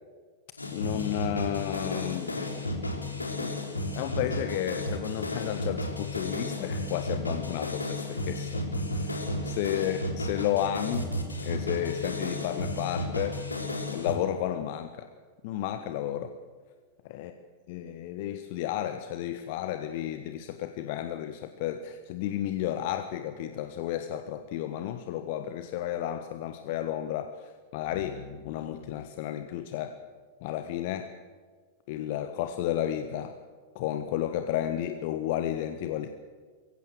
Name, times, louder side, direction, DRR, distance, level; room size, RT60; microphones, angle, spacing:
sound 1, 0.6-14.1, left 1 dB, 80° left, 3.2 m, -33 dB
voice 1, 0.7-3.0 3.4-3.5 3.9-8.6 8.9-11.2 11.4-13.4 13.9-15.1 15.4-16.3 17.1-17.3 17.7-30.0 30.4-31.1 31.9-33.4 33.7-36.1, left 11 dB, 50° left, 9 dB, 1.3 m, -32 dB
22.5 x 16.0 x 7.9 m, 1.5 s
figure-of-eight pair, 90°, 0 cm